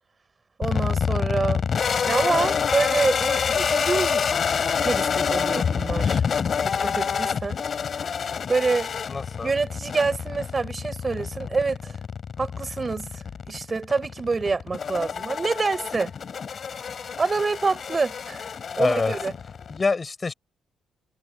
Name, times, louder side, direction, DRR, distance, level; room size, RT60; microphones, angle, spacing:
sound 1, 0.6-19.8, left 6 dB, 50° left, 3.6 m, -27 dB
voice 1, 0.6-1.6 2.0-4.3 4.8-6.2 6.6-7.6 8.5-8.9 9.4-11.9 12.4-16.1 17.2-18.4 18.8-19.3, right 4 dB, 30° right, 6.8 m, -26 dB
voice 2, 9.1-9.5 18.8-19.1 19.7-20.3, left 4 dB, 30° left, 5.7 m, -25 dB
cardioid pair, 90°, 0 cm